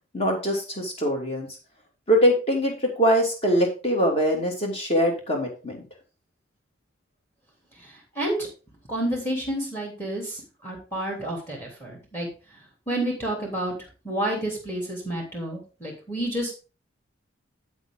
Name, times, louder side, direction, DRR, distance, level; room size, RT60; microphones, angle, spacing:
voice 1, 0.1-1.5 2.1-5.8, equal, 30° left, 1 dB, 2.8 m, -23 dB
voice 2, 8.1-8.5 8.9-12.3 12.9-13.7 14.0-16.5, right 1 dB, 10° left, -1 dB, 3.1 m, -29 dB
8.3 x 7.9 x 3.9 m, 0.33 s
head